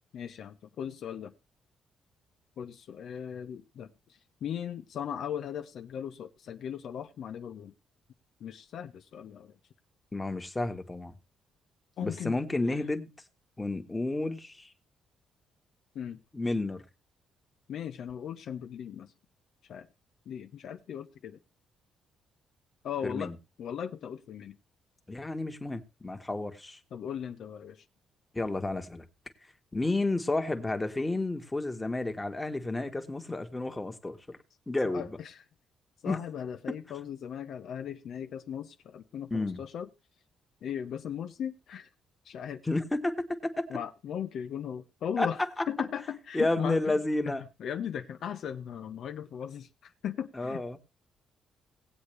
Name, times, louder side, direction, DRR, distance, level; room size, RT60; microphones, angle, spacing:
voice 1, 0.1-1.3 2.6-7.7 8.4-9.6 12.0-12.4 12.7-12.9 15.9-16.2 17.7-19.1 19.7-19.9 20.3-21.4 22.8-23.3 23.6-24.6 26.9-27.8 34.8-35.4 36.0-39.9 40.6-41.9 42.2-42.6 43.7-47.3 47.6-50.6, left 8 dB, 70° left, 0.7 m, -38 dB
voice 2, 10.1-11.1 12.0-13.1 13.6-14.7 16.3-16.8 23.0-23.3 25.1-26.8 28.3-29.0 29.7-34.4 34.7-35.2 36.0-36.2 36.7-36.8 39.3-39.6 42.7-43.7 45.2-45.3 45.6-45.7 46.3-47.4 50.4-50.8, left 2 dB, 15° left, 1.5 m, -31 dB
18.0 x 8.1 x 3.3 m
cardioid pair, 90°, 0 cm